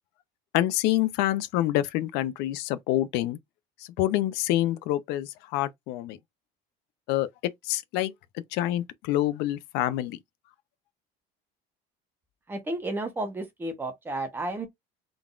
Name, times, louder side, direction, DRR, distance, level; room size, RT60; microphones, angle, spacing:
voice 1, 0.5-3.4 4.0-6.2 7.1-7.3 7.6-8.1 8.5-10.2, left 14 dB, 60° left, 0.5 m, -27 dB
voice 2, 12.5-14.7, right 2 dB, 10° right, 0.9 m, -32 dB
3.9 x 3.5 x 2.4 m
cardioid pair, 180°, 20 cm